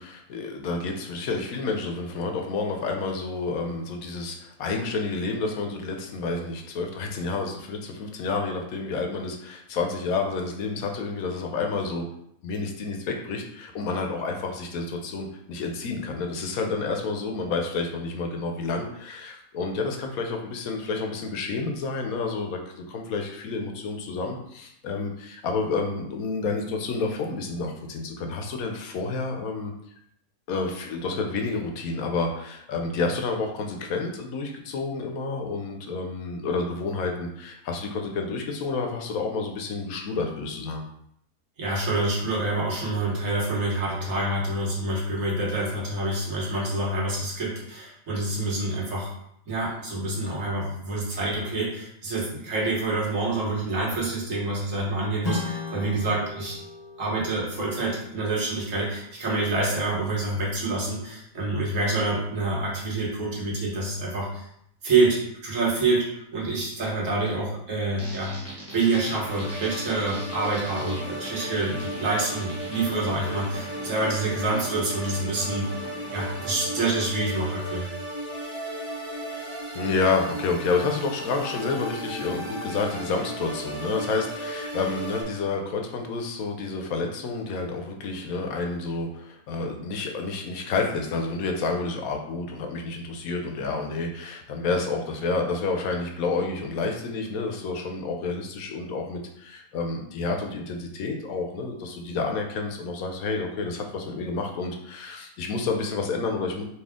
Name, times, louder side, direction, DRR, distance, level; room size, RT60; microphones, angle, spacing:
voice 1, 0.0-12.0 12.4-29.7 30.5-40.9 79.7-106.6, left 4 dB, 75° left, 3 dB, 1.1 m, -29 dB
voice 2, 41.6-49.1 49.5-56.6 57.0-64.5 64.8-66.1 66.3-75.7 76.1-77.9, right 2 dB, 60° right, -4 dB, 1.6 m, -27 dB
Strum, 55.2-60.2, left 4 dB, 35° left, 0.4 m, -37 dB
sound 1, 68.0-76.9, right 1 dB, 10° left, 1.2 m, -41 dB
sound 2, 69.3-85.2, right 1 dB, 15° right, 1.6 m, -35 dB
4.3 x 2.7 x 3.6 m, 0.72 s
omnidirectional pair, 1.5 m